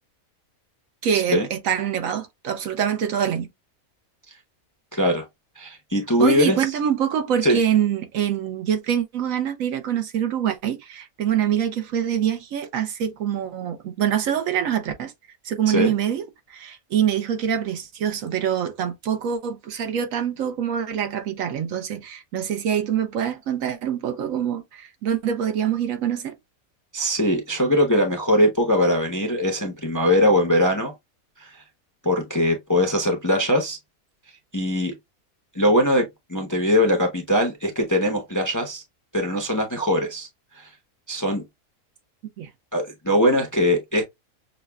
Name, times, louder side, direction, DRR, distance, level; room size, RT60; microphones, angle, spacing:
voice 1, 1.0-3.5 6.2-15.1 15.4-16.2 16.5-26.3 42.4-42.5, right 9 dB, 70° right, 1.1 m, -25 dB
voice 2, 4.9-5.2 5.6-6.6 7.4-7.6 15.7-15.9 26.9-30.9 31.4-31.6 32.0-33.8 34.5-34.9 35.5-38.8 39.1-40.3 40.5-40.7 41.1-41.4 42.7-44.0, equal, 20° left, 0.5 m, -21 dB
6.4 x 2.2 x 2.2 m
omnidirectional pair, 1.5 m